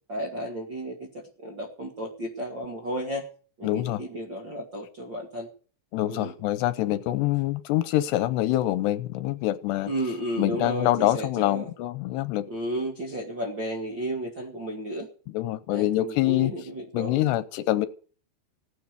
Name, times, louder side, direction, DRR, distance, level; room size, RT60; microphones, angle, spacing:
voice 1, 0.1-3.3 3.6-5.5 6.1-6.3 9.8-11.7 12.5-15.1 15.7-17.2, right 1 dB, 50° right, -2 dB, 1.4 m, -33 dB
voice 2, 3.6-4.0 5.9-9.9 10.4-12.5 15.3-16.5 16.9-17.9, left 15 dB, 80° left, 13 dB, 2.8 m, -25 dB
16.5 x 9.5 x 6.8 m, 0.41 s
omnidirectional pair, 5.1 m